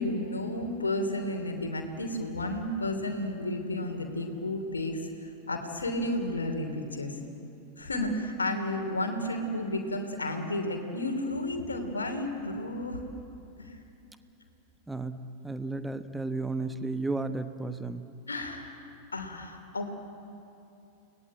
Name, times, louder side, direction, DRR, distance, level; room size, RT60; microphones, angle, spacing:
voice 1, 0.0-7.2 7.8-13.0 13.6-13.8 18.3-18.8 19.1-19.9, left 1 dB, 75° left, 5 dB, 3.1 m, -32 dB
voice 2, 14.9-18.0, right 3 dB, 5° right, 10 dB, 1.2 m, -33 dB
30.0 x 19.5 x 8.9 m, 2.8 s
figure-of-eight pair, 90°, 0 cm